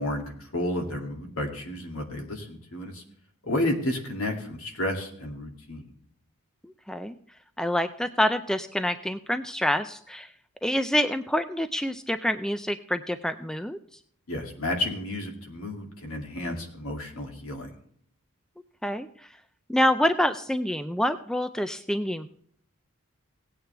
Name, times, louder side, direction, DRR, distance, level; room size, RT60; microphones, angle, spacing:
voice 1, 0.0-3.0 3.4-5.8 14.3-17.7, left 1 dB, 70° left, 2 dB, 2.5 m, -31 dB
voice 2, 6.6-7.2 7.6-10.3 10.6-13.8 18.8-19.1 19.7-22.3, equal, 5° left, 10 dB, 0.4 m, -27 dB
17.5 x 8.8 x 3.4 m, 0.64 s
head